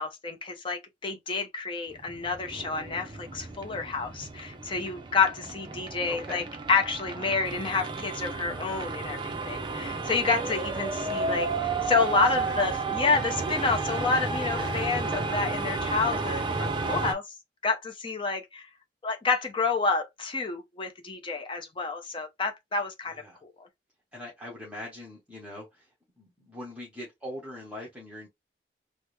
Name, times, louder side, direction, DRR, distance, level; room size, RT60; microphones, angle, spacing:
voice 1, 0.0-6.4 6.7-17.2 17.6-18.7 19.0-23.2 23.4-23.5, left 4 dB, 30° left, 0.6 m, -29 dB
sound 1, 1.9-17.1, right 3 dB, 25° right, 0.5 m, -32 dB
voice 2, 6.1-6.5 12.4-12.7 23.1-23.4 24.1-25.9 26.2-28.3, left 1 dB, 5° right, 0.9 m, -42 dB
3.4 x 2.0 x 3.0 m
head